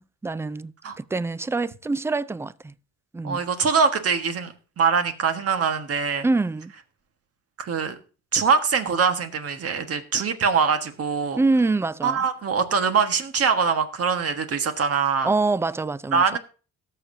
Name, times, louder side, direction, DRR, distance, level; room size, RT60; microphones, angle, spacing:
voice 1, 0.0-2.7 3.1-3.4 6.2-6.7 11.4-12.2 15.2-16.4, right 3 dB, 10° right, 0.3 m, -25 dB
voice 2, 3.2-6.3 7.6-7.9 8.3-11.4 12.0-15.3 16.1-16.4, right 5 dB, 50° right, 1.4 m, -23 dB
18.0 x 6.7 x 2.7 m
cardioid pair, 90°, 30 cm